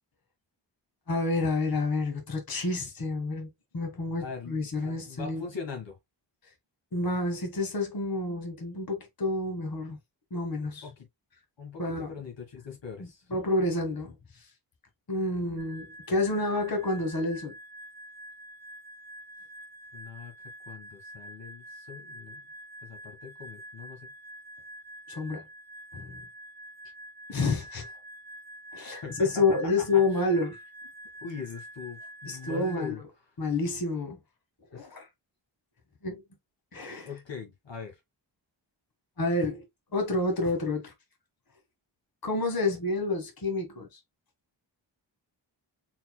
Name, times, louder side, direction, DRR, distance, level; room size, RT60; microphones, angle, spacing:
voice 1, 1.1-5.4 6.9-10.0 10.3-10.8 11.8-12.1 13.3-14.5 15.1-17.5 25.1-25.4 25.9-26.2 27.3-27.9 28.7-30.6 32.3-33.0 33.4-34.2 34.7-35.1 36.0-36.2 36.7-37.1 39.2-39.6 39.9-40.9 42.2-44.0, left 2 dB, 50° left, 1.7 m, -29 dB
voice 2, 4.2-6.0 10.8-11.1 11.6-13.2 19.9-20.3 20.7-22.4 22.8-24.1 28.8-29.6 29.9-30.3 31.2-33.0 34.7-35.0 37.0-38.0, left 5 dB, 75° left, 1.6 m, -41 dB
sound 1, 15.6-32.9, right 1 dB, 5° left, 1.5 m, -47 dB
4.3 x 4.1 x 2.2 m
wide cardioid pair, 95°, 44 cm